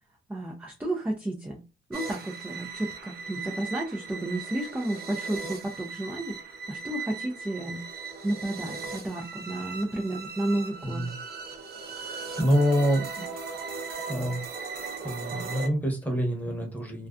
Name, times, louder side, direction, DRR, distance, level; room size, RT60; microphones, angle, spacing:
voice 1, 0.3-1.6 1.9-7.8 8.2-11.0, right 1 dB, 10° right, 0 dB, 0.5 m, -32 dB
sound 1, 1.9-15.7, right 4 dB, 55° right, 0.7 m, -38 dB
voice 2, 10.8-11.1 12.0-13.2 14.1-14.4 15.0-17.1, equal, 10° left, 1 dB, 1.0 m, -26 dB
2.4 x 2.3 x 2.3 m, 0.29 s
cardioid pair, 90°, 20 cm